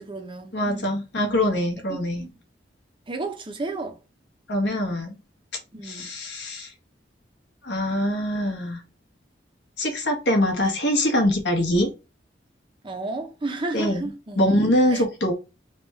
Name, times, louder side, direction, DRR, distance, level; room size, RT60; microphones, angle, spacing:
voice 1, 0.0-0.9 1.9-2.3 3.1-4.0 5.7-6.1 12.8-14.4 14.9-15.0, right 2 dB, 30° right, 0.6 m, -32 dB
voice 2, 0.5-2.3 4.5-5.2 5.8-6.7 7.6-8.8 9.8-11.9 13.7-15.3, left 1 dB, 70° left, 1.3 m, -23 dB
3.5 x 2.4 x 4.3 m
head